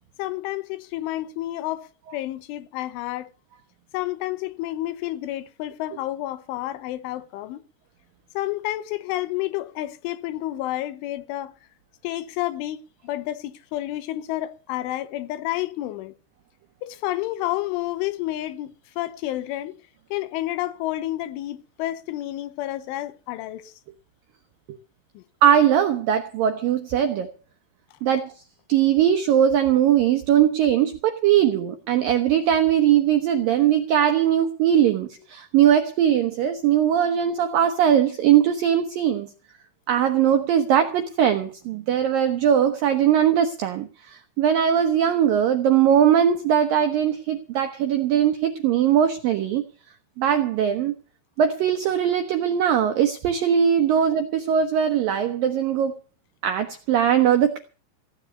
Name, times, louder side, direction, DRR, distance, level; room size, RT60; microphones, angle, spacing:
voice 1, 0.2-3.3 3.9-7.6 8.3-11.5 12.0-16.1 16.8-19.7 20.1-23.7 25.1-25.2, left 15 dB, 90° left, 3.4 m, -30 dB
voice 2, 25.4-27.3 28.0-28.3 28.7-39.3 39.9-49.6 50.2-50.9 51.4-55.9 56.4-57.6, right 9 dB, 80° right, 2.0 m, -20 dB
16.0 x 8.3 x 8.1 m
omnidirectional pair, 5.5 m